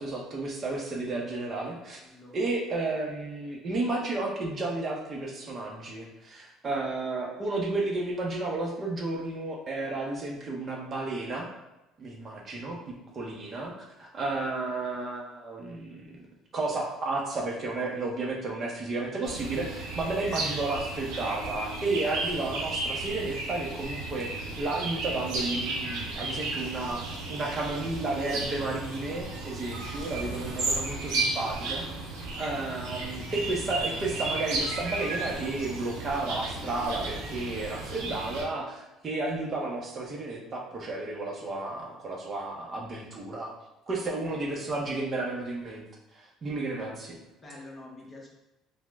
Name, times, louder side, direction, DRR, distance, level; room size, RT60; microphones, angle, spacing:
voice 1, 0.0-2.0 2.3-11.5 12.0-13.7 14.0-16.1 16.5-31.8 32.4-43.5 43.9-45.8 46.1-47.2, right 2 dB, 40° right, -1 dB, 0.6 m, -32 dB
voice 2, 1.9-2.4 44.2-44.9 47.4-48.3, left 2 dB, 20° left, -1 dB, 0.7 m, -47 dB
sound 1, 19.2-38.4, right 2 dB, 85° right, 0.7 m, -34 dB
3.0 x 2.0 x 3.3 m, 0.97 s
cardioid pair, 105°, 0 cm